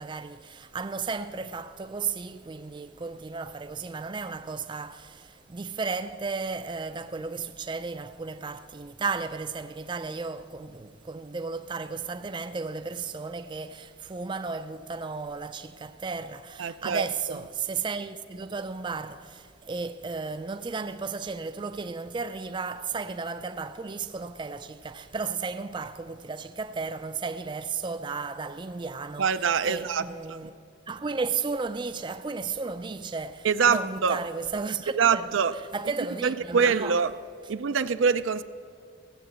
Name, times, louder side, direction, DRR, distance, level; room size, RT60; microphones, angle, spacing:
voice 1, 0.0-30.5 30.9-35.3 35.7-37.0, right 4 dB, 25° right, 0.4 m, -34 dB
voice 2, 16.6-17.1 29.2-30.0 30.3-30.4 33.4-34.2 34.9-35.5 36.2-37.1 37.5-38.4, right 6 dB, 80° right, 0.5 m, -24 dB
16.0 x 7.8 x 8.0 m
head